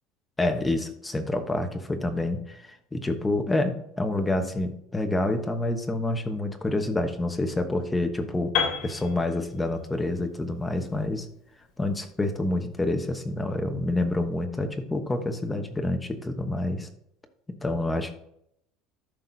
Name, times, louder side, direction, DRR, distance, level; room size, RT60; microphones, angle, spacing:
voice 1, 0.4-11.3 11.8-16.9 17.6-18.1, left 2 dB, 10° left, 5 dB, 1.1 m, -28 dB
Piano, 8.5-12.5, left 7 dB, 55° left, 3.0 m, -33 dB
13.5 x 5.7 x 2.8 m, 0.73 s
cardioid pair, 160°, 0 cm